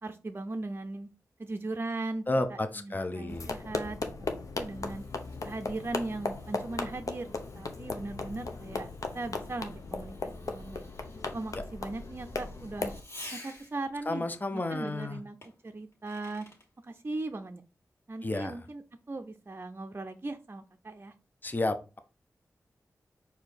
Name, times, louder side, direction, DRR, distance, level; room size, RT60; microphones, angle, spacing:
voice 1, 0.0-1.1 1.4-2.3 2.8-5.0 5.4-8.9 9.1-10.8 11.3-12.9 13.3-14.2 14.5-15.4 15.6-16.5 16.8-17.6 18.1-18.8 19.1-21.1, right 2 dB, 35° right, 0.5 m, -38 dB
voice 2, 2.3-3.5 14.1-15.2 18.2-18.6 21.4-22.0, left 2 dB, 30° left, 0.6 m, -31 dB
sound 1, 3.3-13.0, left 3 dB, 65° left, 0.7 m, -37 dB
Fireworks, 4.6-14.0 15.4-16.7, left 1 dB, 45° left, 2.1 m, -53 dB
4.6 x 2.8 x 4.0 m
cardioid pair, 40°, 6 cm